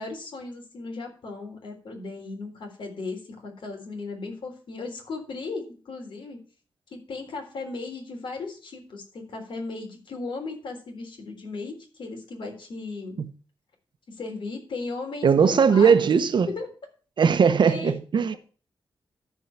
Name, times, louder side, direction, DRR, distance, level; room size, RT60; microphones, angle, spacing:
voice 1, 0.0-6.4 6.9-13.2 14.1-16.0 16.4-16.7 17.7-18.0, left 3 dB, 75° left, 3.6 m, -36 dB
voice 2, 15.2-16.5 17.2-18.4, right 6 dB, 65° right, 1.0 m, -19 dB
13.5 x 4.8 x 5.8 m
wide cardioid pair, 110°, 9 cm